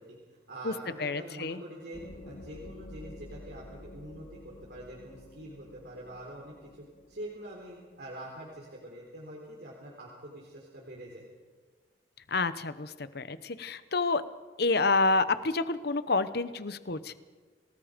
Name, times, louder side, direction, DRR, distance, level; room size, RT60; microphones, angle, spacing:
voice 1, 0.0-11.2, right 1 dB, 65° right, -3 dB, 4.0 m, -45 dB
voice 2, 1.0-1.6 12.3-14.2 14.6-17.1, left 3 dB, 60° left, 13 dB, 1.0 m, -28 dB
sound 1, 1.9-9.3, left 1 dB, 80° left, 2.5 m, -50 dB
28.5 x 19.0 x 5.3 m, 1.4 s
head